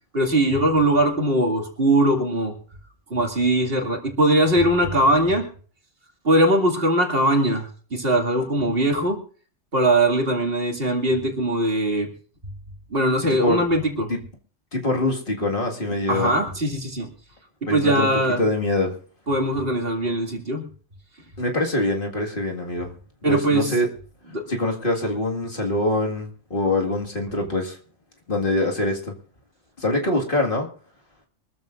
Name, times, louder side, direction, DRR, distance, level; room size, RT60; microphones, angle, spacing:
voice 1, 0.1-2.5 3.1-5.5 6.2-9.2 9.7-12.1 12.9-14.1 16.1-17.1 17.6-18.4 19.3-20.7 23.2-23.7 24.3-24.5, right 1 dB, 50° right, 1 dB, 2.7 m, -21 dB
voice 2, 14.7-16.3 17.7-18.9 21.4-22.9 23.3-23.9 24.5-27.8 28.3-29.1 29.8-30.7, left 2 dB, 45° left, 1 dB, 2.2 m, -24 dB
24.0 x 14.0 x 2.6 m, 0.42 s
omnidirectional pair, 1.2 m